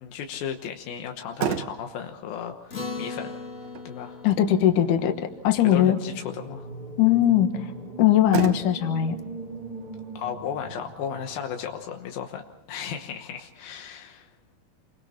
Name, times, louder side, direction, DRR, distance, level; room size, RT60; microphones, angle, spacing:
voice 1, 0.0-3.3 3.8-4.2 5.6-6.7 10.2-12.4 12.7-14.3, left 8 dB, 90° left, 4 dB, 3.0 m, -35 dB
Motor vehicle (road), 1.0-14.0, right 9 dB, 65° right, 2.0 m, -38 dB
Acoustic guitar, 2.7-7.4, left 4 dB, 35° left, 1.4 m, -40 dB
voice 2, 4.2-6.0 7.0-7.5 8.0-9.2, left 11 dB, 65° left, 7 dB, 2.7 m, -20 dB
sound 1, 5.7-11.8, right 3 dB, 20° right, 1.3 m, -40 dB
28.0 x 23.5 x 4.3 m, 0.93 s
omnidirectional pair, 4.0 m